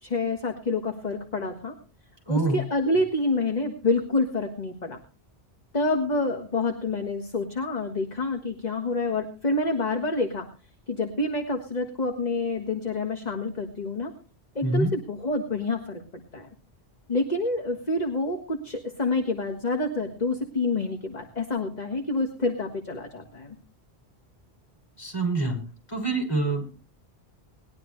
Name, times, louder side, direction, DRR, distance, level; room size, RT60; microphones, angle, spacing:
voice 1, 0.0-1.8 2.3-5.0 5.7-10.5 10.9-14.1 14.6-16.0 16.3-16.5 17.1-23.6, left 2 dB, 40° left, 4 dB, 1.7 m, -27 dB
voice 2, 2.3-2.6 14.6-14.9 25.0-25.6 25.9-26.7, right 2 dB, 20° left, -1 dB, 6.5 m, -25 dB
20.0 x 12.0 x 3.2 m, 0.36 s
omnidirectional pair, 1.1 m